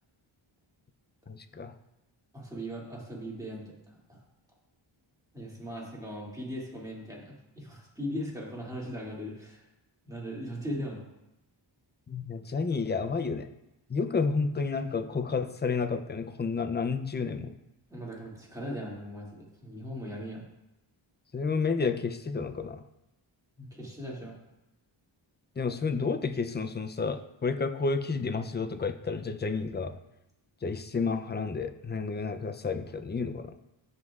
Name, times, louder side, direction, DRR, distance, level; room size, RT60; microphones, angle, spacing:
voice 1, 1.3-1.7 12.1-13.5 13.9-17.5 21.3-22.8 25.6-29.9 30.6-33.5, left 4 dB, 20° left, 9 dB, 0.5 m, -31 dB
voice 2, 2.3-3.6 4.1-4.2 5.3-9.6 10.1-11.0 17.9-20.4 23.6-24.4, equal, 5° right, -5 dB, 2.4 m, -39 dB
15.5 x 5.3 x 2.4 m, 0.91 s
wide cardioid pair, 95°, 48 cm